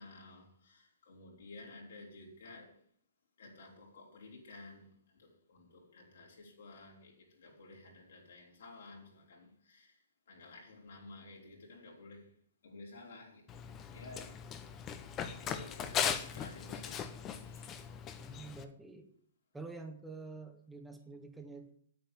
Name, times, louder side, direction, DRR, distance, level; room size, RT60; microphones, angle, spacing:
voice 1, 0.0-2.8 3.4-10.0 10.3-12.3 12.6-13.5 13.9-14.4 15.4-17.7, left 2 dB, 70° left, -2 dB, 5.2 m, -53 dB
Run, 13.5-18.6, left 8 dB, 25° left, 1.1 m, -39 dB
voice 2, 18.2-19.1 19.5-21.7, right 3 dB, 5° right, 3 dB, 1.5 m, -47 dB
9.4 x 8.9 x 7.7 m, 0.63 s
figure-of-eight pair, 120°, 0 cm